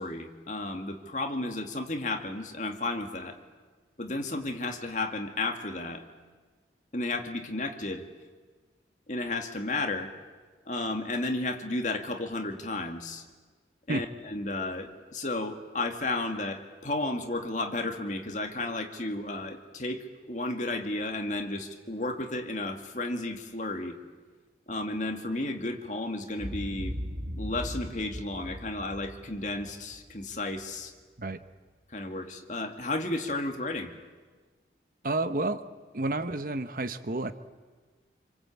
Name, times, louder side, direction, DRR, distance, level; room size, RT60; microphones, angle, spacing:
voice 1, 0.0-3.4 4.0-6.0 6.9-8.0 9.1-10.1 10.7-13.2 13.9-24.0 24.7-26.9 27.4-30.9 31.9-33.9, left 2 dB, 45° left, 5 dB, 2.2 m, -33 dB
Boom, 26.4-30.6, equal, 70° right, 3.0 m, -39 dB
voice 2, 35.0-35.6 35.9-37.3, right 2 dB, 50° right, 11 dB, 1.0 m, -30 dB
27.5 x 25.5 x 8.5 m, 1.4 s
head